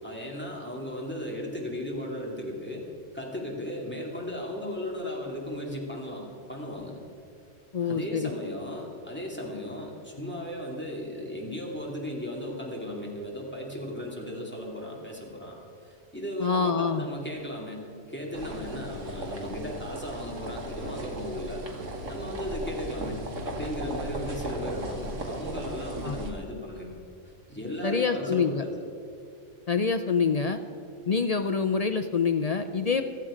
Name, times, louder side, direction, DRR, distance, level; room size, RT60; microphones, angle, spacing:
voice 1, 0.0-2.8 3.1-7.0 7.8-15.6 15.8-17.8 18.1-21.6 22.1-26.9 27.2-28.7, left 1 dB, 10° left, -2 dB, 2.4 m, -36 dB
voice 2, 7.7-8.3 16.4-17.0 26.0-26.2 27.8-28.6 29.7-30.6 31.1-33.0, left 5 dB, 50° left, 7 dB, 0.4 m, -26 dB
sound 1, 18.3-26.3, right 1 dB, 75° right, 2.0 m, -36 dB
15.0 x 14.5 x 5.0 m, 2.5 s
omnidirectional pair, 1.3 m